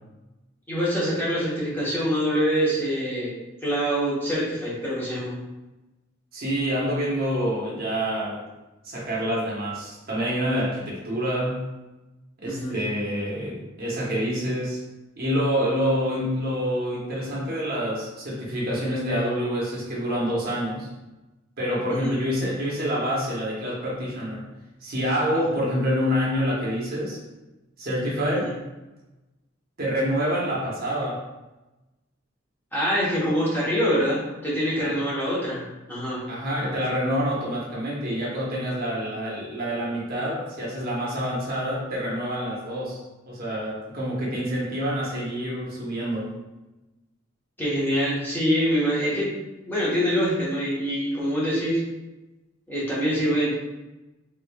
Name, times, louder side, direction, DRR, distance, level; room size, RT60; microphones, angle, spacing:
voice 1, 0.7-3.3 3.6-5.3 12.4-12.7 21.9-22.1 28.3-28.5 32.7-35.6 35.9-36.2 47.6-49.3 49.7-51.8 52.7-53.5, equal, 10° left, -8 dB, 1.0 m, -25 dB
voice 2, 6.3-8.4 8.8-11.6 12.4-14.8 15.2-20.9 21.6-24.5 24.8-27.2 27.8-28.5 29.8-31.2 34.8-34.9 36.3-43.0 43.3-46.3, equal, 50° right, -5 dB, 1.0 m, -27 dB
3.6 x 3.2 x 2.3 m, 1.1 s
head